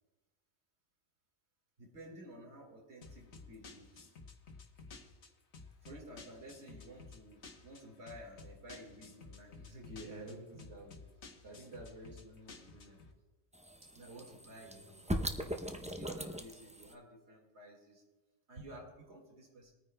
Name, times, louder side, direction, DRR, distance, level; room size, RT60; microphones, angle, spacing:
voice 1, 1.8-4.1 5.8-11.0 11.4-13.0 13.9-18.0 18.5-19.7, right 1 dB, 75° right, 0 dB, 2.2 m, -52 dB
sound 1, 3.0-13.1, left 4 dB, 70° left, 1.4 m, -54 dB
sound 2, 13.5-16.9, equal, 10° right, 0.3 m, -40 dB
21.5 x 9.5 x 2.2 m, 1.2 s
omnidirectional pair, 1.2 m